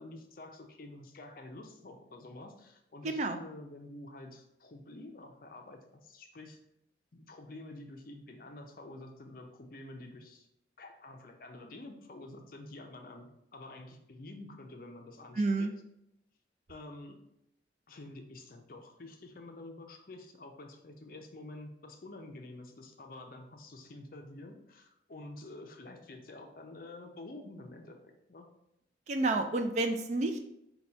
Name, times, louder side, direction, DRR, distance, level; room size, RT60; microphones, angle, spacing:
voice 1, 0.0-6.6 7.1-10.5 10.8-15.7 16.7-17.2 17.9-28.0 28.3-28.5, left 2 dB, 50° left, 4 dB, 0.5 m, -48 dB
voice 2, 3.0-3.4 15.3-15.7 29.1-30.4, right 2 dB, 40° right, 6 dB, 0.3 m, -30 dB
4.0 x 2.3 x 4.3 m, 0.82 s
head